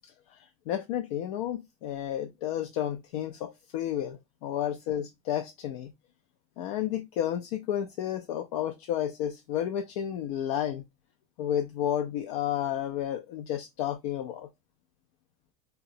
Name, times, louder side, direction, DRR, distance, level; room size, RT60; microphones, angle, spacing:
voice 1, 0.3-5.9 6.6-10.8 11.4-14.5, left 10 dB, 70° left, 0.4 m, -31 dB
3.6 x 2.1 x 2.6 m
supercardioid pair, 140°, 20 cm